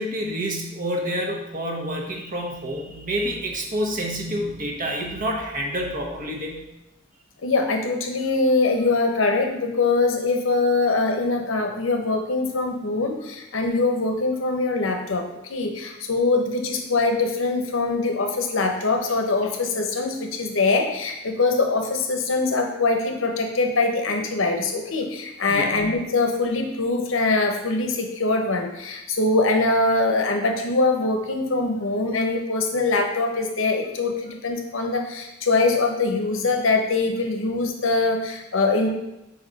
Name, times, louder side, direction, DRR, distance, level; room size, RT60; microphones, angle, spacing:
voice 1, 0.0-6.6 25.5-25.8, equal, 45° right, 0 dB, 1.1 m, -28 dB
voice 2, 7.4-38.9, left 3 dB, 90° left, 4 dB, 0.9 m, -23 dB
5.1 x 5.0 x 4.0 m, 0.91 s
head